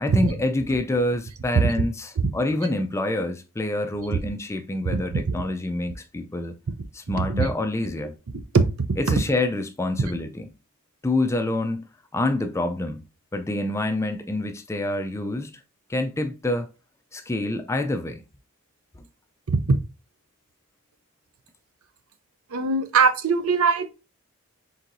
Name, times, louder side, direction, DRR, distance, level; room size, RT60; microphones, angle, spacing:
voice 1, 0.0-6.6 6.9-8.2 9.0-10.5 11.0-11.9 12.1-13.0 13.3-15.5 15.9-16.7 17.1-18.2, left 2 dB, 10° left, 0.3 m, -27 dB
voice 2, 4.9-5.2 7.3-7.5 8.5-8.6 19.5-19.8 22.5-23.9, right 4 dB, 70° right, 0.6 m, -21 dB
4.4 x 3.8 x 2.6 m
head